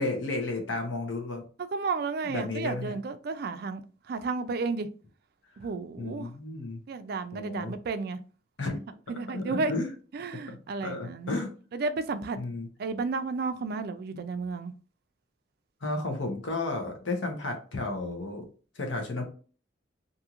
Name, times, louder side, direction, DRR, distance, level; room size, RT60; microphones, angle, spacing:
voice 1, 0.0-1.4 2.2-2.9 6.0-6.8 7.3-7.7 8.6-8.8 9.3-9.9 10.5-11.5 12.4-12.7 15.8-18.4 18.7-19.2, left 2 dB, 80° left, 0.8 m, -33 dB
voice 2, 1.7-4.9 5.6-6.3 6.9-8.2 9.1-9.7 10.1-11.3 11.7-12.4 12.8-14.7, right 4 dB, 55° right, 0.3 m, -32 dB
2.6 x 2.4 x 2.8 m
head